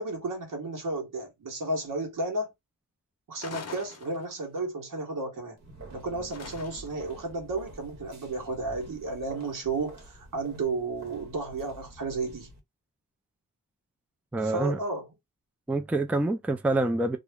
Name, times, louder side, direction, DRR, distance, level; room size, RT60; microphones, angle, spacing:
voice 1, 0.0-2.5 3.3-5.6 5.9-12.5 14.4-15.1, right 2 dB, 85° right, 1.1 m, -33 dB
sound 1, 3.4-4.6 6.3-7.1, left 5 dB, 50° left, 0.6 m, -43 dB
sound 2, 5.6-12.6, right 2 dB, 55° right, 1.0 m, -47 dB
voice 2, 14.3-14.8 15.7-17.2, right 2 dB, 5° right, 0.3 m, -26 dB
2.4 x 2.0 x 3.4 m
wide cardioid pair, 100°, 32 cm